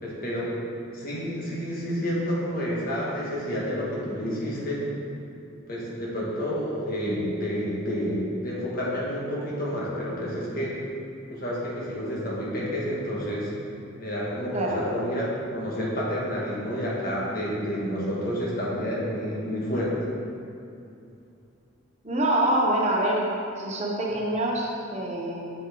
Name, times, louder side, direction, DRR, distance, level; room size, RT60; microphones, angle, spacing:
voice 1, 0.0-0.5 0.9-4.8 5.7-10.7 11.3-13.5 14.0-19.9, equal, 50° left, -6 dB, 1.6 m, -29 dB
voice 2, 14.5-14.8 22.0-25.5, right 1 dB, 35° right, -2 dB, 0.9 m, -25 dB
7.1 x 6.2 x 3.8 m, 2.7 s
head